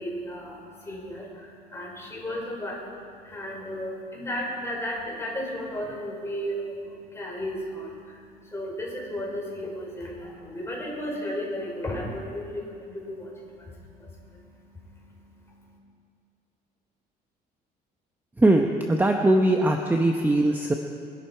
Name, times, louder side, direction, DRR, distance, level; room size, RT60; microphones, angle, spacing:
voice 1, 0.0-15.8, equal, 15° left, -2 dB, 4.8 m, -35 dB
voice 2, 18.4-20.7, right 1 dB, 10° right, 3 dB, 0.9 m, -21 dB
24.0 x 11.5 x 4.6 m, 2.3 s
cardioid pair, 110°, 17 cm